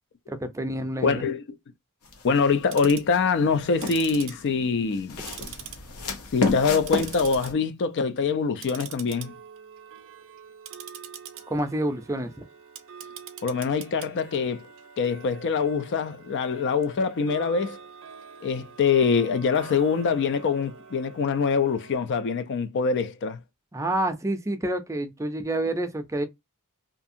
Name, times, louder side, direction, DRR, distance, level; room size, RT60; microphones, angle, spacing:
voice 1, 0.3-1.2 11.5-12.3 23.7-26.3, right 1 dB, 15° right, 0.4 m, -28 dB
voice 2, 1.0-1.4 2.2-5.2 6.3-9.3 13.4-14.7 15.0-17.8 18.4-23.4, left 5 dB, 55° left, 0.4 m, -24 dB
sound 1, 2.1-2.5 3.1-4.3 4.9-7.5, left 3 dB, 80° left, 0.8 m, -30 dB
Tick-tock, 2.5-3.1 3.7-5.0 5.3-6.2 6.5-7.5 7.9-8.1 8.6-22.0, right 8 dB, 65° right, 0.5 m, -44 dB
2.7 x 2.5 x 2.5 m
head